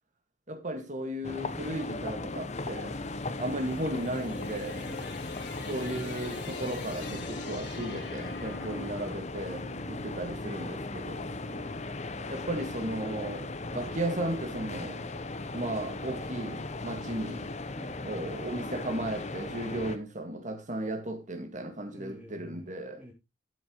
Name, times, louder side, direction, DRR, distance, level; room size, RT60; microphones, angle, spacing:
voice 1, 0.5-3.0 3.4-4.9 5.7-11.3 12.3-15.1 15.5-17.5 18.0-23.0, right 1 dB, 45° right, 1.9 m, -35 dB
sound 1, 1.2-20.0, left 2 dB, 40° left, 0.9 m, -37 dB
sound 2, 2.7-11.0, left 3 dB, 90° left, 2.3 m, -46 dB
voice 2, 4.9-5.2 8.7-9.0 9.7-10.0 11.5-11.8 17.7-18.1 19.6-20.0 21.9-23.1, equal, 10° right, 3.4 m, -47 dB
12.5 x 7.1 x 3.1 m
head